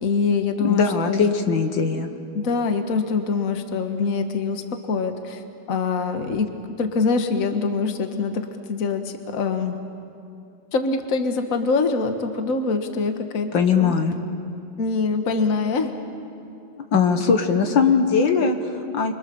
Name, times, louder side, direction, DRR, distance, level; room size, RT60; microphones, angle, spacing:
voice 1, 0.0-1.3 1.9-2.0 2.4-5.4 5.7-6.5 6.8-9.8 10.7-13.5 13.8-13.9 14.8-15.9, left 4 dB, 45° left, 6 dB, 1.7 m, -24 dB
voice 2, 0.6-2.1 13.5-14.1 16.8-19.1, left 5 dB, 70° left, 5 dB, 2.1 m, -20 dB
29.5 x 23.5 x 7.1 m, 2.6 s
omnidirectional pair, 2.2 m